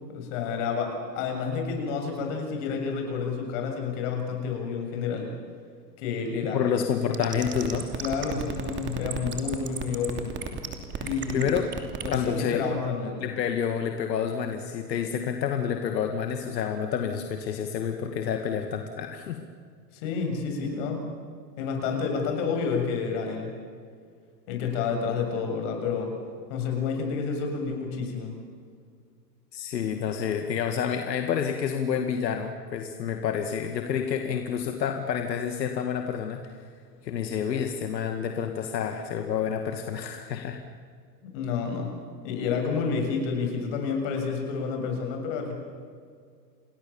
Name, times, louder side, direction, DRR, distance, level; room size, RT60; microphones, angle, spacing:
voice 1, 0.1-5.3 6.0-6.6 8.0-10.3 11.0-11.5 12.0-13.3 19.9-21.0 21.6-23.5 24.5-26.1 26.5-28.4 41.2-41.9 42.2-45.5, left 5 dB, 45° left, 3 dB, 7.6 m, -29 dB
voice 2, 6.5-7.9 11.0-11.1 11.3-11.7 12.1-12.6 13.2-19.4 29.5-36.6 37.0-40.6, left 8 dB, 80° left, 5 dB, 2.3 m, -29 dB
sound 1, 7.1-12.3, right 7 dB, 20° right, 2.8 m, -32 dB
29.0 x 20.0 x 7.3 m, 2.1 s
hypercardioid pair, 135°, 50 cm